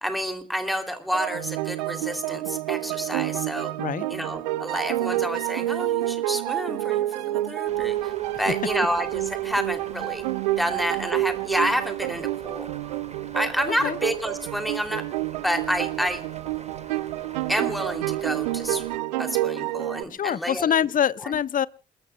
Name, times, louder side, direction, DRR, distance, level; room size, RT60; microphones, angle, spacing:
voice 1, 0.0-3.7 4.1-8.1 8.4-10.2 10.6-12.7 13.3-15.0 15.4-16.2 17.5-18.8 19.2-20.7 21.2-21.3, equal, ahead, 3.1 m, -29 dB
sound 1, 1.1-20.0, right 16 dB, 75° right, 0.6 m, -28 dB
voice 2, 3.8-4.1 13.8-14.0 20.1-21.7, left 9 dB, 40° left, 0.6 m, -24 dB
sound 2, 7.6-19.0, right 4 dB, 30° right, 2.3 m, -45 dB
28.5 x 14.0 x 2.4 m
figure-of-eight pair, 40°, 21 cm